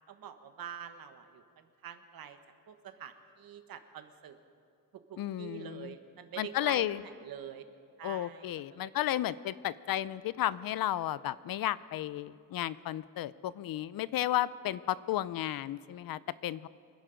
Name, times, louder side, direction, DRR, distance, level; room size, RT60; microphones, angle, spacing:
voice 1, 0.1-2.4 2.7-4.4 5.1-7.6 8.0-8.9, right 9 dB, 90° right, 8 dB, 1.2 m, -46 dB
voice 2, 5.2-5.9 6.4-7.0 8.0-16.7, left 13 dB, 85° left, 18 dB, 0.5 m, -33 dB
25.5 x 10.5 x 5.1 m, 2.5 s
wide cardioid pair, 145°, 34 cm